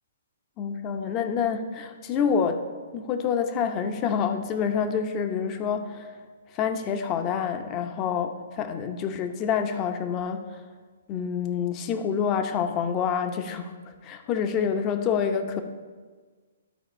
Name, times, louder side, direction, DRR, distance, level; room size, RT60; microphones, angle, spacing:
voice 1, 0.6-2.6 2.9-6.1 6.5-10.5 11.1-13.7 14.0-15.6, left 7 dB, 30° left, 8 dB, 0.7 m, -27 dB
12.0 x 4.3 x 4.3 m, 1.5 s
figure-of-eight pair, 130°, 0 cm